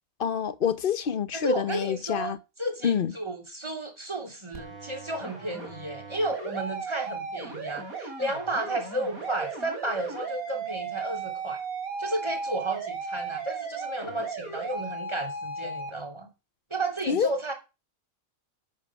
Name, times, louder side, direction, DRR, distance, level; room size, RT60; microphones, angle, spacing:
voice 1, 0.2-2.4 2.8-3.1 17.1-17.3, left 7 dB, 45° left, 0.8 m, -27 dB
voice 2, 1.4-2.3 2.6-11.6 12.0-16.3 16.7-17.5, right 2 dB, 20° right, 3.0 m, -32 dB
sound 1, 4.5-15.9, right 4 dB, 75° right, 3.5 m, -36 dB
10.5 x 8.3 x 6.1 m
omnidirectional pair, 1.5 m